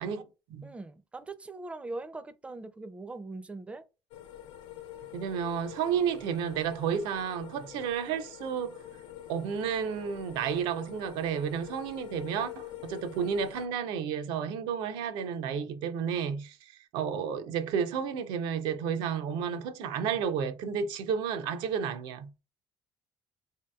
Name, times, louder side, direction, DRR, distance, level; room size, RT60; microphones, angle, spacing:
voice 1, 0.0-0.7 5.1-8.8 9.3-22.4, right 7 dB, 85° right, 0.5 m, -32 dB
voice 2, 0.6-3.8, right 2 dB, 15° right, 0.4 m, -41 dB
sound 1, 4.1-13.7, left 11 dB, 85° left, 0.4 m, -46 dB
3.2 x 2.8 x 2.2 m
cardioid pair, 105°, 8 cm